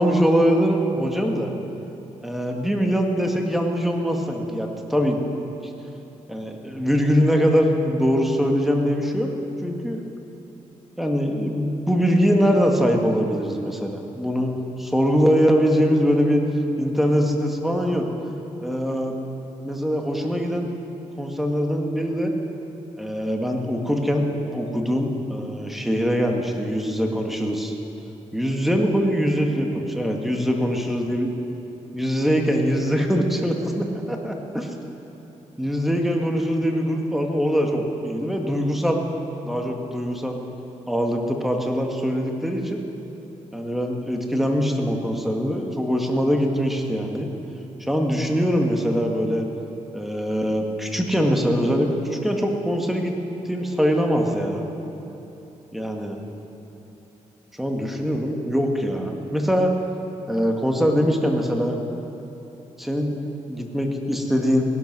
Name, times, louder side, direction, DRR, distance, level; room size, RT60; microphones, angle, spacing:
voice 1, 0.0-1.5 2.2-5.2 6.3-9.3 9.6-10.0 11.0-14.5 14.8-16.4 16.8-18.1 18.6-19.1 19.6-20.7 21.2-22.3 23.0-27.7 28.3-31.3 31.9-34.7 35.6-39.0 39.4-40.4 40.9-42.8 43.5-47.3 47.8-49.5 49.9-53.1 53.5-54.7 55.7-56.2 57.6-59.7 60.3-61.8 62.8-63.2 63.5-64.7, equal, ahead, 2 dB, 1.9 m, -22 dB
17.5 x 11.5 x 6.1 m, 3.0 s
cardioid pair, 80°, 13 cm